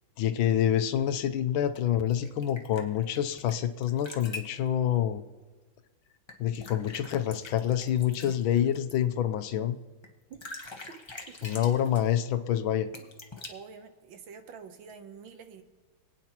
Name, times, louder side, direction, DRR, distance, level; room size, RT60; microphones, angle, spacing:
voice 1, 0.2-5.2 6.4-9.8 11.4-12.9, left 10 dB, 85° left, 10 dB, 1.5 m, -27 dB
sound 1, 1.8-3.5 3.8-4.6 6.3-8.9 10.0-10.1 10.3-12.1 12.9-13.5, left 2 dB, 25° left, 0.7 m, -44 dB
voice 2, 13.5-15.6, right 6 dB, 75° right, 8 dB, 1.6 m, -47 dB
27.0 x 9.2 x 2.9 m, 1.3 s
omnidirectional pair, 2.2 m